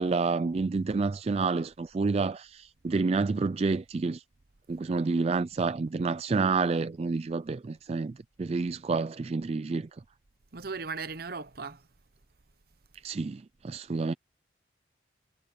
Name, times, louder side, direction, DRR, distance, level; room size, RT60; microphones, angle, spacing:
voice 1, 0.0-4.2 4.7-9.9 13.0-14.1, right 4 dB, 30° right, 0.3 m, -29 dB
voice 2, 10.5-11.8, right 4 dB, 50° right, 0.9 m, -37 dB
head